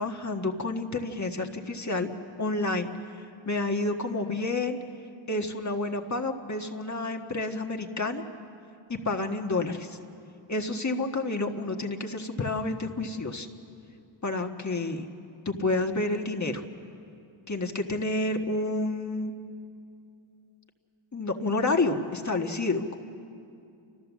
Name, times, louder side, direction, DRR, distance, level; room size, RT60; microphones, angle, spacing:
voice 1, 0.0-2.1 2.4-4.8 5.3-8.2 8.9-10.0 10.5-13.5 14.2-15.1 15.4-16.6 17.5-19.3 21.1-23.0, left 2 dB, 35° left, 3 dB, 1.6 m, -29 dB
29.5 x 14.0 x 7.3 m, 2.5 s
cardioid pair, 55°, 50 cm